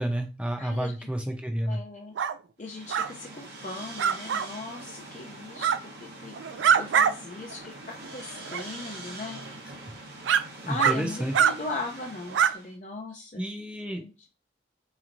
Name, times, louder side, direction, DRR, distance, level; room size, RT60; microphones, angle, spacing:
voice 1, 0.0-1.8 10.6-11.3 13.4-14.0, equal, 5° right, 3 dB, 0.6 m, -30 dB
voice 2, 0.6-1.1 1.7-2.1 2.6-6.4 6.8-9.4 10.7-13.4 13.9-14.3, left 2 dB, 40° left, -1 dB, 0.5 m, -38 dB
sound 1, 2.2-2.4 2.9-3.1 4.0-4.5 5.6-5.8 6.3-7.1 7.5-7.6 8.5-8.6 9.4-9.5 10.3-10.4 10.8-11.0 11.3-11.5 12.3-12.5, right 8 dB, 80° right, 0.4 m, -23 dB
sound 2, 2.6-12.7, right 2 dB, 60° right, 0.9 m, -44 dB
4.2 x 3.0 x 2.5 m, 0.30 s
head